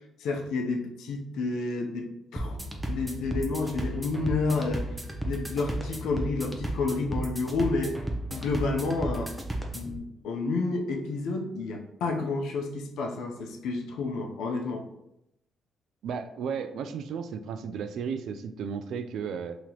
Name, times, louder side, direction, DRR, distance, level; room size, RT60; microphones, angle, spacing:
voice 1, 0.2-2.6 2.9-4.9 5.2-7.9 8.3-9.3 9.7-14.8, left 3 dB, 85° left, 1 dB, 0.7 m, -30 dB
sound 1, 2.4-10.0, right 1 dB, 5° right, 0.6 m, -34 dB
voice 2, 16.0-19.6, right 6 dB, 75° right, 10 dB, 0.3 m, -34 dB
3.0 x 2.9 x 3.9 m, 0.83 s
cardioid pair, 90°, 0 cm